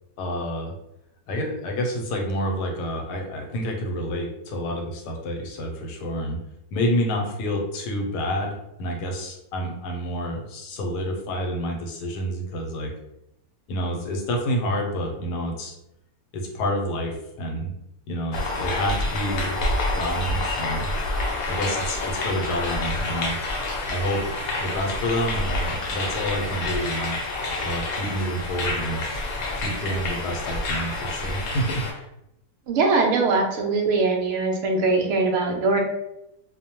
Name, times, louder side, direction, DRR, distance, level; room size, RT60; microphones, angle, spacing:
voice 1, 0.2-0.7 1.3-6.4 6.7-12.9 13.7-15.7 16.3-17.7 18.1-19.6 19.9-20.9 21.5-23.4 23.9-24.2 24.6-27.2 27.6-29.0 29.6-32.1, equal, 90° left, 2 dB, 1.2 m, -28 dB
sound 1, 18.3-31.9, left 2 dB, 70° left, 1.0 m, -28 dB
voice 2, 32.7-35.8, right 3 dB, 70° right, 1 dB, 0.7 m, -21 dB
2.6 x 2.1 x 2.8 m, 0.84 s
omnidirectional pair, 1.7 m